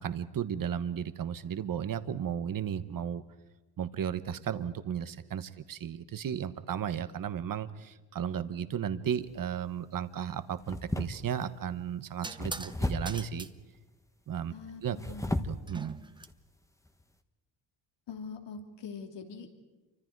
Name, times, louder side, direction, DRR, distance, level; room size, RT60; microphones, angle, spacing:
voice 1, 0.0-3.2 3.8-13.5 14.3-14.5 14.8-15.0 15.4-16.0, right 8 dB, 45° right, 12 dB, 1.2 m, -34 dB
sound 1, 9.2-9.6 10.6-11.5 12.4-13.3 14.8-15.7 16.2-16.3 16.9-17.0, left 1 dB, 5° left, 1.3 m, -34 dB
sound 2, 11.0-11.2 12.2-12.8 13.1-13.5 15.7-16.3, right 2 dB, 10° right, 0.8 m, -42 dB
voice 2, 14.5-15.5 18.1-19.5, left 5 dB, 70° left, 4 dB, 3.2 m, -43 dB
28.0 x 25.0 x 4.7 m, 1.1 s
cardioid pair, 105°, 45 cm